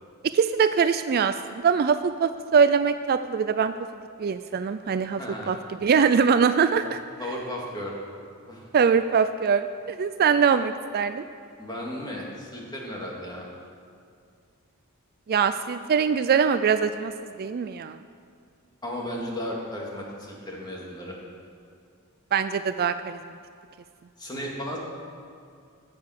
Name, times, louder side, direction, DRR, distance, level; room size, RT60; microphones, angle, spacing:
voice 1, 0.3-3.7 4.2-5.2 5.5-7.0 8.7-11.2 15.3-17.1 17.4-18.0 22.3-23.2, right 6 dB, 45° right, 11 dB, 0.3 m, -22 dB
voice 2, 5.1-5.6 7.2-7.9 8.5-8.7 11.6-13.5 18.8-21.2 24.2-24.8, left 1 dB, 20° left, -3 dB, 2.3 m, -34 dB
16.0 x 7.0 x 6.6 m, 2.3 s
head